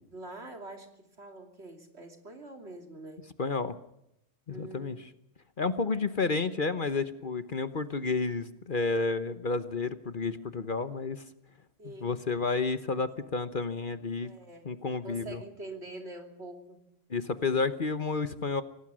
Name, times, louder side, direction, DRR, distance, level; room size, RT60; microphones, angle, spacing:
voice 1, 0.1-3.2 4.5-5.1 11.8-12.1 12.9-13.0 14.2-14.7 15.0-16.8, right 2 dB, 60° right, 4 dB, 3.3 m, -45 dB
voice 2, 3.4-3.8 4.5-5.0 5.6-11.2 12.0-14.3 14.6-15.4 17.1-18.6, left 4 dB, 45° left, 11 dB, 1.1 m, -31 dB
25.0 x 18.5 x 6.3 m, 0.77 s
omnidirectional pair, 1.3 m